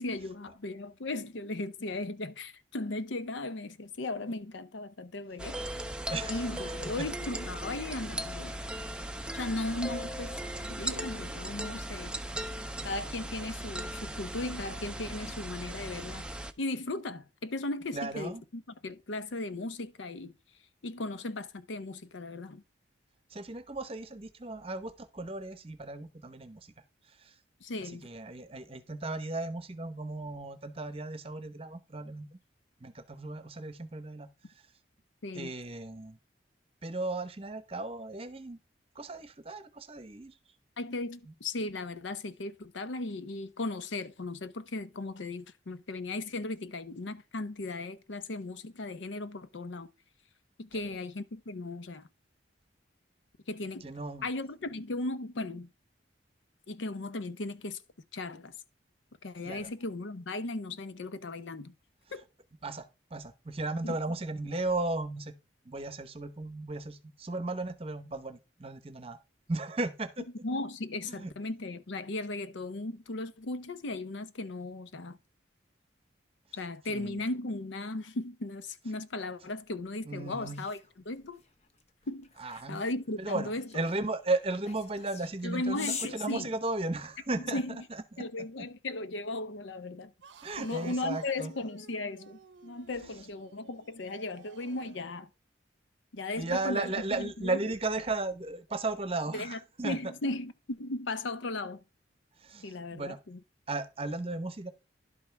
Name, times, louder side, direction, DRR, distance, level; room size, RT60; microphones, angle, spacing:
voice 1, 0.0-5.7 6.3-8.5 9.3-12.2 12.8-16.3 16.6-20.3 20.8-22.6 27.6-28.1 35.2-35.5 40.8-49.9 50.6-52.1 53.5-53.9 54.2-55.7 56.7-57.8 58.1-58.5 59.2-61.7 62.1-62.2 63.8-64.0 70.4-75.2 76.5-80.8 81.1-81.4 82.1-82.3 82.7-83.7 85.4-86.5 87.5-87.8 88.2-90.1 90.6-95.3 96.1-97.6 99.3-101.8 102.6-103.4, left 2 dB, 75° left, 0.7 m, -37 dB
sound 1, 5.4-16.5, right 1 dB, 5° right, 0.4 m, -38 dB
voice 2, 6.0-7.1 17.9-18.4 23.3-26.7 27.1-27.4 27.8-32.3 32.8-34.3 35.3-36.2 36.8-38.6 38.9-40.3 50.8-51.0 53.8-54.3 59.4-59.7 62.6-65.3 65.6-69.2 69.5-70.2 71.1-71.3 76.9-77.2 80.0-80.6 82.4-82.8 83.2-88.2 90.4-91.5 93.0-93.2 96.4-100.0 102.4-103.2 103.7-104.7, right 2 dB, 30° right, 0.8 m, -35 dB
sound 2, 80.3-87.3, left 5 dB, 35° left, 0.9 m, -45 dB
sound 3, 90.2-95.1, right 4 dB, 70° right, 0.7 m, -54 dB
11.0 x 5.5 x 4.6 m
head